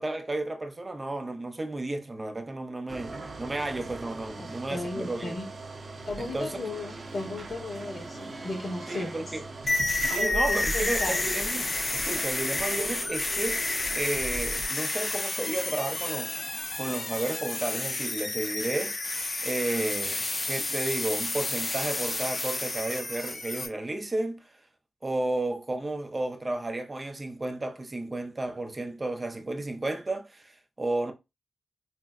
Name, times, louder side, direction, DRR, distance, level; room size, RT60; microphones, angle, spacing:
voice 1, 0.0-5.3 6.2-6.6 8.9-9.4 10.1-13.6 13.9-24.4 25.0-31.1, right 2 dB, 30° right, 0.6 m, -32 dB
sound 1, 2.9-14.7, right 2 dB, 55° right, 1.1 m, -40 dB
voice 2, 4.4-5.4 6.0-9.1 10.2-11.2, left 2 dB, 60° left, 1.5 m, -35 dB
sound 2, 9.7-23.7, left 2 dB, 40° left, 0.8 m, -30 dB
5.7 x 2.3 x 2.5 m
cardioid pair, 70°, 0 cm